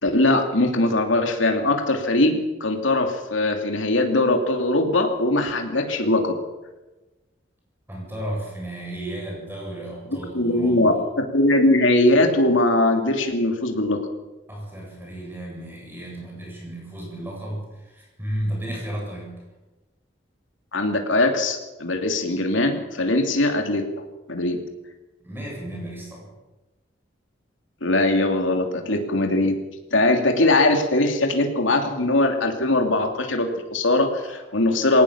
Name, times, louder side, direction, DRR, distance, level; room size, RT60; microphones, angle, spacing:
voice 1, 0.0-6.4 10.3-14.0 20.7-23.8 24.3-24.6 27.8-29.6 29.9-35.0, left 2 dB, 90° left, 4 dB, 2.9 m, -21 dB
voice 2, 7.9-11.0 14.5-17.6 17.9-19.4 25.2-26.3, right 1 dB, 10° right, -2 dB, 8.0 m, -33 dB
20.5 x 18.5 x 7.3 m, 1.1 s
head